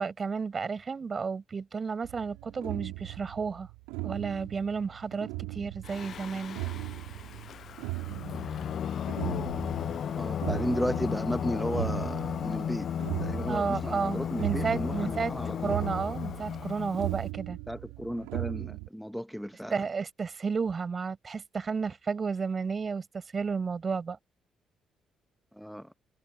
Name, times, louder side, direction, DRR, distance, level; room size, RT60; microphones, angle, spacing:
voice 1, 0.0-3.7 4.0-6.6 13.4-15.3 15.6-17.6 19.7-24.2, right 5 dB, 40° right, 5.9 m, -32 dB
sound 1, 2.0-18.9, right 25 dB, 80° right, 6.4 m, -38 dB
Singing, 5.8-17.2, left 8 dB, 60° left, 0.6 m, -34 dB
voice 2, 10.1-12.9 13.2-15.7 17.7-19.8 25.5-25.9, equal, ahead, 1.6 m, -34 dB
hypercardioid pair, 50°, 0 cm